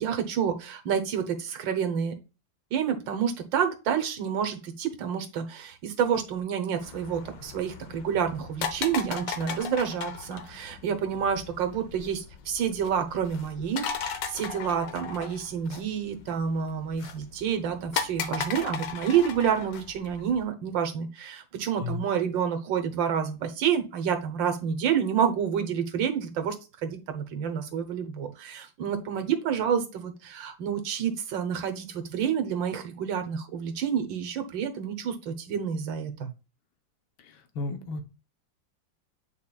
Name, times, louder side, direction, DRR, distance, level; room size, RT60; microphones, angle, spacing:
voice 1, 0.0-2.1 2.7-26.5 26.8-36.3, right 8 dB, 70° right, 7 dB, 1.7 m, -29 dB
sound 1, 6.8-20.4, left 7 dB, 70° left, 1.4 m, -37 dB
voice 2, 37.2-38.1, left 3 dB, 85° left, 6 dB, 1.7 m, -34 dB
8.9 x 4.6 x 2.3 m, 0.30 s
omnidirectional pair, 2.2 m